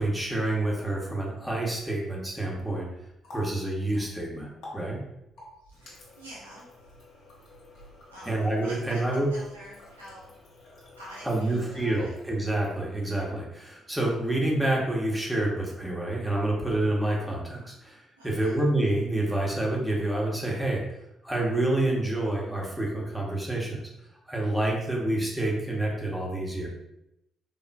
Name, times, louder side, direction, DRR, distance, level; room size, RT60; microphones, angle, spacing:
voice 1, 0.0-2.9 3.3-4.5 4.7-5.0 8.3-9.3 11.2-20.8 21.2-23.8 24.3-26.7, right 1 dB, 5° right, -3 dB, 1.1 m, -28 dB
Water tap faucet, 2.7-13.5, left 1 dB, 60° left, 1.0 m, -50 dB
voice 2, 5.6-6.7 8.1-10.3 11.0-12.1 18.2-18.6, equal, 90° right, -7 dB, 0.6 m, -47 dB
3.7 x 2.4 x 2.2 m, 0.85 s
figure-of-eight pair, 40°, 0 cm